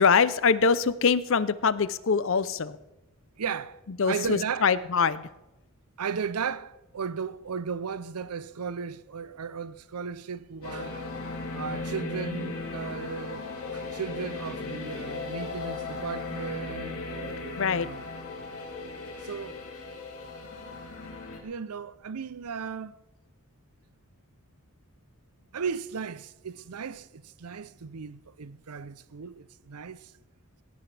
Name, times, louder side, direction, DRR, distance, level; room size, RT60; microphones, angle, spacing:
voice 1, 0.0-2.8 4.0-5.3 17.5-17.9, left 5 dB, 60° left, 0.6 m, -23 dB
voice 2, 3.4-4.7 6.0-11.1 11.5-18.0 19.2-19.6 21.4-23.0 25.5-30.1, right 6 dB, 90° right, 0.6 m, -36 dB
sound 1, 10.6-21.4, left 3 dB, 85° left, 4.6 m, -37 dB
19.5 x 17.5 x 3.4 m
head